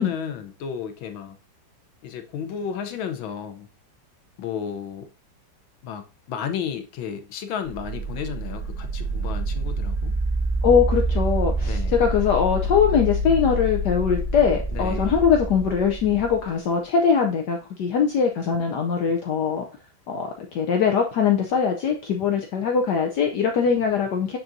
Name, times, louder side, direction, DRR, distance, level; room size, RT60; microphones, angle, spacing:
voice 1, 0.0-1.4 2.0-3.7 4.4-5.1 5.8-10.1 11.6-12.0 14.7-15.2, left 8 dB, 90° left, 1.6 m, -33 dB
sound 1, 7.6-16.4, right 1 dB, 45° right, 2.3 m, -27 dB
voice 2, 10.6-19.6 20.1-24.4, left 6 dB, 65° left, 1.2 m, -22 dB
9.7 x 3.8 x 2.6 m
omnidirectional pair, 2.1 m